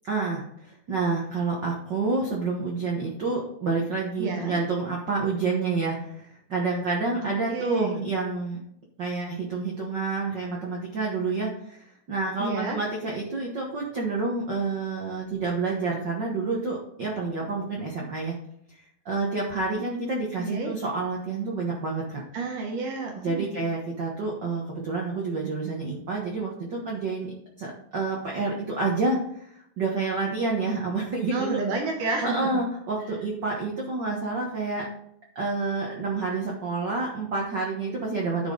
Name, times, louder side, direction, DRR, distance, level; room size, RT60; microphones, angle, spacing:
voice 1, 0.0-8.6 9.0-11.8 12.1-18.3 19.0-22.2 23.2-29.5 29.8-31.6 32.2-34.9 35.3-38.5, right 3 dB, 90° right, -2 dB, 0.9 m, -28 dB
voice 2, 4.2-4.6 7.2-8.0 12.4-12.8 20.4-20.7 22.3-23.5 31.3-32.5, right 3 dB, 70° right, 2 dB, 2.4 m, -30 dB
10.5 x 5.8 x 3.8 m, 0.72 s
omnidirectional pair, 4.0 m